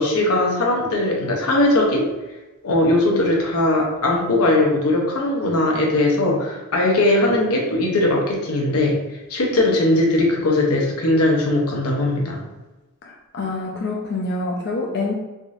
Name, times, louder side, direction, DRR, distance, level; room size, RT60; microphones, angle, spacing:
voice 1, 0.0-2.1 2.6-9.0 9.3-12.4, left 1 dB, 85° left, -1 dB, 0.7 m, -19 dB
voice 2, 13.0-15.1, left 3 dB, 50° left, -2 dB, 0.4 m, -26 dB
3.6 x 2.6 x 2.4 m, 1.1 s
head